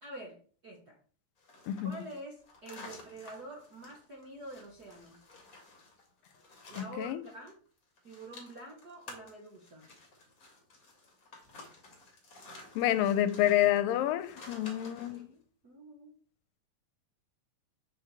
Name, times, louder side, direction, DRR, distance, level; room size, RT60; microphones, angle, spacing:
voice 1, 0.0-1.0 1.8-5.2 6.7-7.6 8.0-9.8 15.0-16.1, right 1 dB, 60° right, 1.0 m, -47 dB
sound 1, 1.4-7.5 7.8-15.2, left 2 dB, 30° left, 1.8 m, -52 dB
voice 2, 12.8-15.3, left 12 dB, 85° left, 2.3 m, -28 dB
6.8 x 6.6 x 3.4 m
omnidirectional pair, 4.0 m